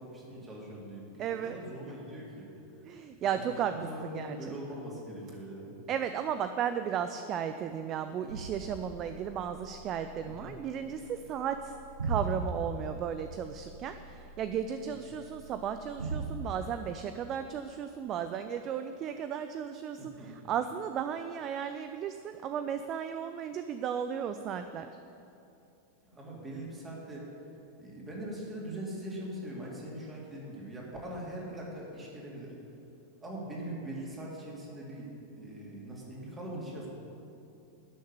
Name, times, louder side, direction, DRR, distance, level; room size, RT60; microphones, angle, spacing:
voice 1, 0.0-2.5 3.3-3.4 3.7-5.8 10.2-10.6 14.8-14.9 20.0-20.3 26.0-27.2 27.8-32.5 33.2-35.1 35.4-36.9, right 1 dB, 20° right, -4 dB, 3.2 m, -41 dB
voice 2, 1.2-1.6 2.9-3.7 4.0-4.5 5.9-11.8 12.0-24.9, right 8 dB, 35° right, 9 dB, 0.5 m, -35 dB
sound 1, 8.3-16.5, right 3 dB, 75° right, 1.3 m, -40 dB
12.0 x 6.6 x 8.4 m, 2.8 s
figure-of-eight pair, 90°, 0 cm